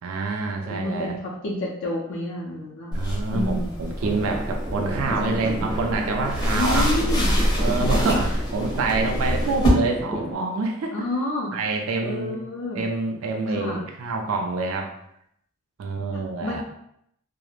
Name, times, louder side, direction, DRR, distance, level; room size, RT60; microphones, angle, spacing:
voice 1, 0.0-1.2 2.9-6.9 7.6-11.1 11.5-12.4 12.7-14.9 15.8-16.6, right 3 dB, 90° right, 2 dB, 0.4 m, -27 dB
voice 2, 0.7-2.9 3.3-3.7 5.2-5.7 6.5-7.3 8.0-8.3 10.9-11.5 12.0-12.8 13.5-13.8 16.1-16.6, left 1 dB, 65° left, -3 dB, 0.4 m, -29 dB
sound 1, 2.9-9.7, equal, 20° left, 0.6 m, -26 dB
sound 2, 4.0-10.3, equal, 20° right, 0.4 m, -33 dB
2.3 x 2.0 x 3.0 m, 0.74 s
head